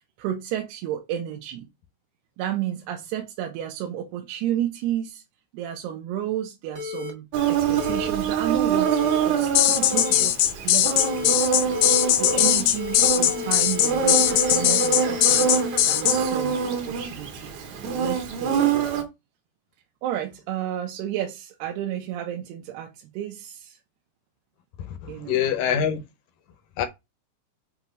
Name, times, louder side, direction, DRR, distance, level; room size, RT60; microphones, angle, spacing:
voice 1, 0.2-1.7 2.4-5.2 5.5-11.4 12.2-15.6 15.8-17.7 17.9-18.9 20.0-23.8 25.1-25.4, right 11 dB, 85° right, 2.9 m, -32 dB
sound 1, 6.8-7.1 7.8-8.1 8.8-9.2 9.9-10.2 11.0-11.3 11.7-12.5 12.8-16.5, left 7 dB, 40° right, 0.9 m, -34 dB
Insect, 7.3-19.0, right 6 dB, 60° right, 2.0 m, -25 dB
sound 2, 9.6-16.2, left 13 dB, 90° left, 2.0 m, -20 dB
voice 2, 24.8-26.0 26.8-26.9, left 8 dB, 70° left, 2.1 m, -25 dB
7.9 x 3.1 x 5.2 m
omnidirectional pair, 4.7 m